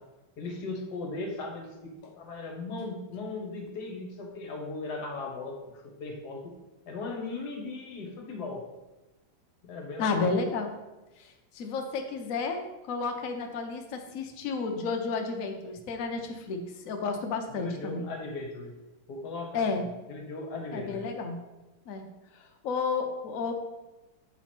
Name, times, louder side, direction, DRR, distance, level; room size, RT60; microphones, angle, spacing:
voice 1, 0.4-6.5 6.9-8.7 9.6-10.4 17.5-18.7 19.1-19.7 20.1-21.0, left 3 dB, 60° left, 2 dB, 1.3 m, -37 dB
voice 2, 10.0-10.7 11.2-18.1 19.5-19.9 20.7-21.4 21.9-22.1 22.3-23.5, left 4 dB, 85° left, 4 dB, 0.7 m, -32 dB
7.8 x 3.0 x 4.3 m, 1.1 s
omnidirectional pair, 2.4 m